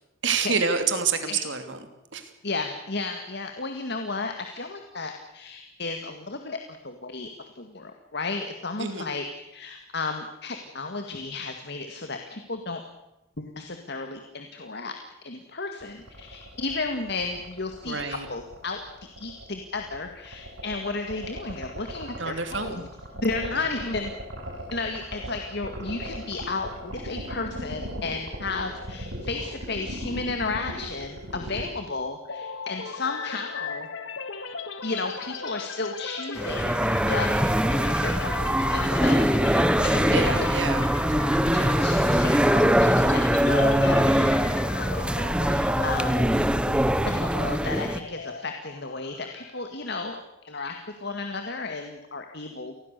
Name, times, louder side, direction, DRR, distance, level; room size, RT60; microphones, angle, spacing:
voice 1, 0.2-2.3 8.8-9.1 17.8-18.3 22.2-22.9 23.5-23.7 40.1-40.9, right 5 dB, 65° right, 8 dB, 2.9 m, -28 dB
voice 2, 2.4-12.8 13.4-14.9 15.2-18.8 19.2-22.8 23.1-24.1 24.7-33.9 34.8-37.4 37.7-40.5 41.5-46.3 47.0-50.2 50.4-52.7, left 3 dB, 55° left, 5 dB, 2.0 m, -33 dB
sound 1, 15.8-31.6, equal, 85° right, 5.8 m, -37 dB
sound 2, 32.3-50.0, left 4 dB, 75° left, 1.8 m, -38 dB
sound 3, 36.4-48.0, equal, 5° right, 0.9 m, -22 dB
28.5 x 20.5 x 6.8 m, 0.91 s
head